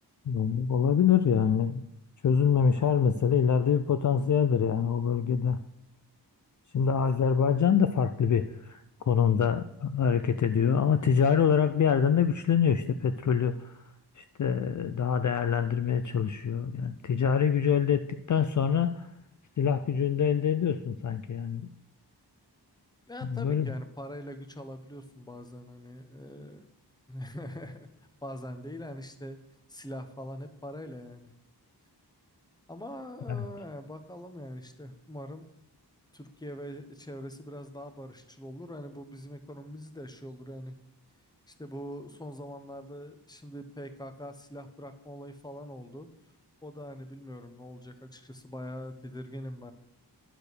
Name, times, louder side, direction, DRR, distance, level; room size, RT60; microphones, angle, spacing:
voice 1, 0.3-1.8 2.2-5.6 6.7-8.8 9.1-13.7 14.2-19.1 19.6-21.6 23.3-23.7 33.3-33.4, left 7 dB, 50° left, 9 dB, 0.4 m, -25 dB
voice 2, 23.1-26.7 27.1-27.9 28.2-29.4 29.7-31.3 32.7-35.5 36.1-40.8 41.5-46.1 46.6-49.7, equal, 10° left, 8 dB, 0.8 m, -42 dB
10.0 x 4.4 x 6.8 m, 0.82 s
wide cardioid pair, 80°, 41 cm